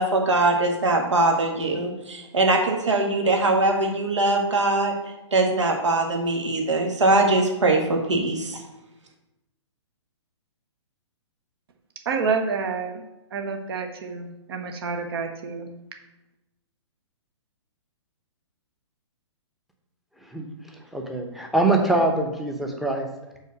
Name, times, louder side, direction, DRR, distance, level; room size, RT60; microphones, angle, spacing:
voice 1, 0.0-4.9 5.3-8.6, right 2 dB, 70° right, 1 dB, 1.8 m, -22 dB
voice 2, 12.0-12.9 13.3-15.7, right 5 dB, 50° right, 4 dB, 1.1 m, -28 dB
voice 3, 20.9-23.0, right 2 dB, ahead, 2 dB, 0.9 m, -23 dB
5.5 x 4.4 x 6.3 m, 0.95 s
figure-of-eight pair, 125°, 16 cm